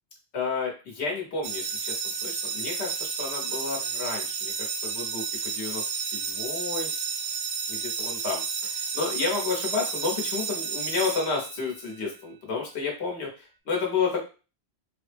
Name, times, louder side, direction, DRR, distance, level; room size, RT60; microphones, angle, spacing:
voice 1, 0.3-6.9 7.7-14.3, left 4 dB, 85° left, -1 dB, 1.1 m, -31 dB
sound 1, 1.4-11.9, right 6 dB, 80° right, 0.8 m, -32 dB
3.6 x 2.0 x 3.2 m, 0.33 s
omnidirectional pair, 1.1 m